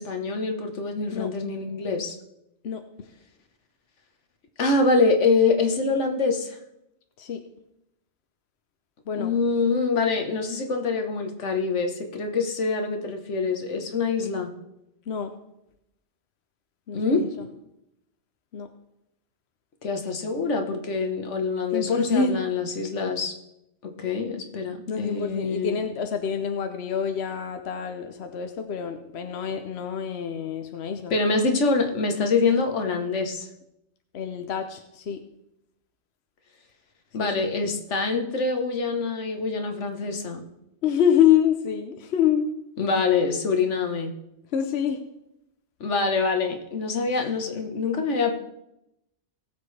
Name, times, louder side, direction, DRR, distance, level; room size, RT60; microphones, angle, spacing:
voice 1, 0.0-2.1 4.6-6.6 9.2-14.5 16.9-17.3 19.8-23.3 23.8-25.8 31.1-33.5 37.1-40.4 42.8-44.1 45.8-48.3, left 4 dB, 85° left, 4 dB, 1.5 m, -25 dB
voice 2, 16.9-17.5 18.5-18.7 21.7-22.4 24.9-31.2 34.1-35.2 37.2-37.5 40.8-42.5 44.5-45.0 47.1-47.3, left 8 dB, 65° left, 7 dB, 1.0 m, -26 dB
19.0 x 7.5 x 3.3 m, 0.85 s
omnidirectional pair, 1.2 m